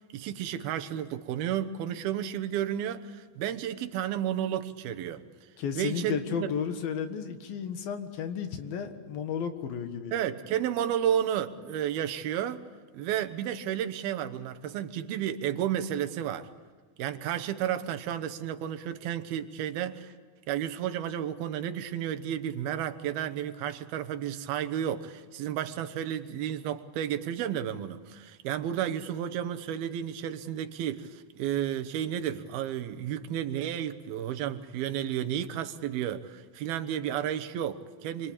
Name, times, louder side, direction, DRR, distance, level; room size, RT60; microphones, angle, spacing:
voice 1, 0.1-5.2 5.8-6.5 10.1-12.6 12.9-16.5 17.0-20.1 20.5-38.3, right 10 dB, 85° right, 8 dB, 3.0 m, -32 dB
voice 2, 5.6-10.1, left 7 dB, 75° left, 7 dB, 3.4 m, -33 dB
28.0 x 24.5 x 8.7 m, 1.5 s
omnidirectional pair, 4.3 m